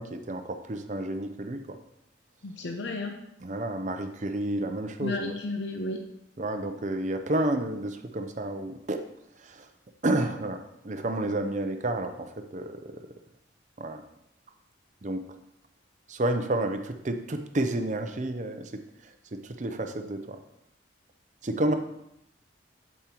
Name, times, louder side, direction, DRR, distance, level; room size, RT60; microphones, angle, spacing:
voice 1, 0.0-1.8 3.4-5.3 6.4-9.0 9.4-9.7 10.0-13.0 13.8-14.0 15.0-15.2 16.1-18.8 19.3-20.4 21.4-21.7, right 1 dB, 40° right, 7 dB, 0.6 m, -30 dB
voice 2, 2.4-3.2 5.0-6.0, left 2 dB, 65° left, 3 dB, 0.7 m, -33 dB
8.4 x 7.4 x 3.0 m, 0.80 s
head